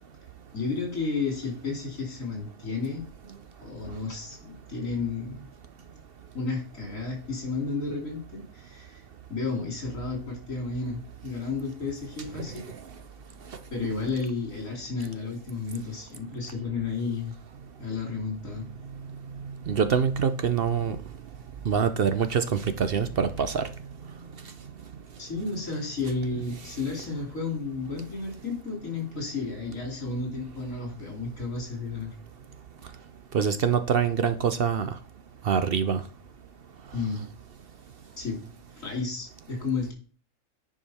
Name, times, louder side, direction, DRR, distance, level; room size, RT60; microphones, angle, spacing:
voice 1, 0.5-3.1 3.6-5.4 6.3-12.7 13.7-17.3 17.8-18.7 25.2-32.1 36.9-37.3 38.2-38.5 38.7-39.9, left 4 dB, 85° left, 1 dB, 3.3 m, -32 dB
voice 2, 19.7-21.0 21.7-23.6 33.3-34.9 35.4-36.0, right 7 dB, 55° right, 10 dB, 0.7 m, -24 dB
9.8 x 5.1 x 4.2 m, 0.40 s
omnidirectional pair, 1.3 m